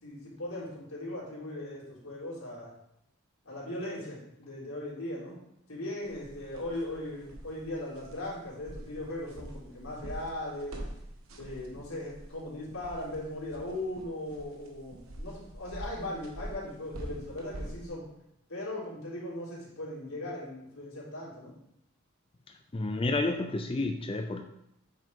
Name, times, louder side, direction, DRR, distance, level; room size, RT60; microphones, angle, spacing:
voice 1, 0.0-2.7 3.4-5.4 5.7-10.8 11.4-18.0 18.5-21.5, left 1 dB, 85° left, -6 dB, 3.6 m, -38 dB
sound 1, 6.0-17.9, right 1 dB, 85° right, 1.3 m, -45 dB
voice 2, 22.7-24.4, left 2 dB, 25° left, 5 dB, 0.4 m, -30 dB
8.7 x 6.4 x 3.6 m, 0.79 s
head